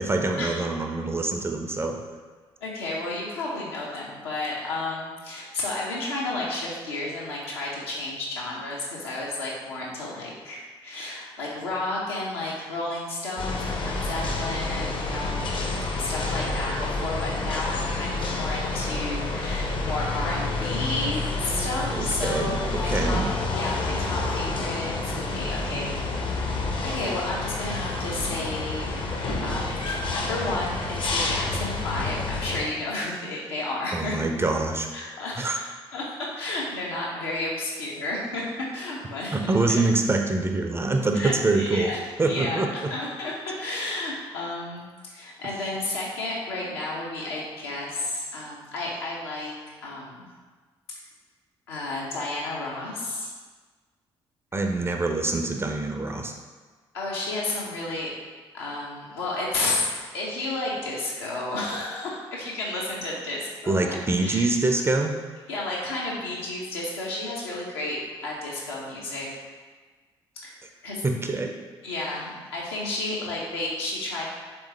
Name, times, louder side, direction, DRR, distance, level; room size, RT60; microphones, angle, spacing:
voice 1, 0.0-2.0 21.9-23.3 33.9-34.9 35.4-35.5 39.3-41.9 42.2-42.9 54.5-56.3 63.7-65.2 71.0-71.5, right 2 dB, 20° right, 3 dB, 0.4 m, -25 dB
voice 2, 2.6-15.5 16.0-23.2 23.5-26.0 26.4-34.2 34.9-39.8 41.1-49.5 49.8-50.3 51.7-53.3 56.9-58.1 58.5-64.5 65.5-69.3 70.4-70.6 70.8-71.0 71.8-74.2, left 2 dB, 75° left, -4 dB, 0.7 m, -32 dB
sound 1, 13.4-32.7, left 2 dB, 40° left, 0.6 m, -29 dB
3.5 x 3.0 x 3.2 m, 1.4 s
figure-of-eight pair, 40°, 13 cm